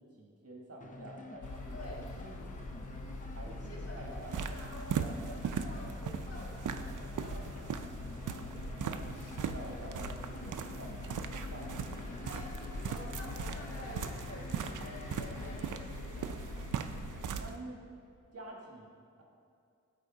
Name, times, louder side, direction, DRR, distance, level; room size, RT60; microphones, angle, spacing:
voice 1, 0.0-1.8 2.1-2.3 3.3-4.4 8.7-11.0 11.5-11.9 17.4-17.8 18.3-19.2, right 1 dB, 50° right, -1 dB, 1.5 m, -48 dB
sound 1, 0.8-15.7, left 2 dB, 25° left, 0.6 m, -49 dB
sound 2, 1.4-17.4, left 2 dB, 85° left, 0.9 m, -43 dB
voice 2, 1.7-2.1 3.6-7.8 12.1-12.5 12.8-16.4, left 1 dB, 50° left, -3 dB, 1.6 m, -49 dB
sound 3, 4.1-17.5, right 8 dB, 90° right, 0.5 m, -40 dB
13.0 x 4.4 x 3.8 m, 2.4 s
wide cardioid pair, 130°, 30 cm